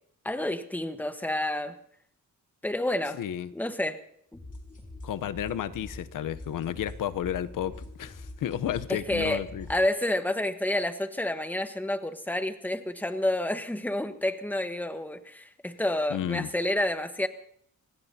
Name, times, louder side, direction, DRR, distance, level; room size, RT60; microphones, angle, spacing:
voice 1, 0.2-1.7 2.6-3.2 3.5-4.0 8.9-9.4 9.7-17.3, left 1 dB, 5° left, 1.3 m, -29 dB
voice 2, 3.2-3.5 5.0-9.7 16.1-16.5, left 10 dB, 80° left, 0.9 m, -32 dB
sound 1, 4.3-9.8, left 2 dB, 25° left, 5.0 m, -44 dB
26.0 x 18.5 x 2.8 m
cardioid pair, 95°, 32 cm